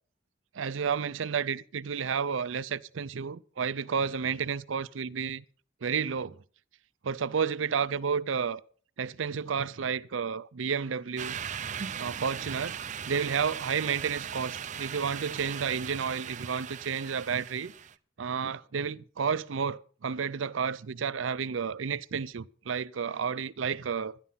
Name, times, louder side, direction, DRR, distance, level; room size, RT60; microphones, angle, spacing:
voice 1, 0.5-5.4 5.8-6.4 7.0-8.6 9.0-11.4 12.0-12.7 13.1-17.7 18.2-24.2, right 6 dB, 85° right, 0.5 m, -31 dB
sound 1, 11.2-17.9, right 8 dB, 40° right, 0.5 m, -38 dB
11.5 x 11.0 x 5.6 m
head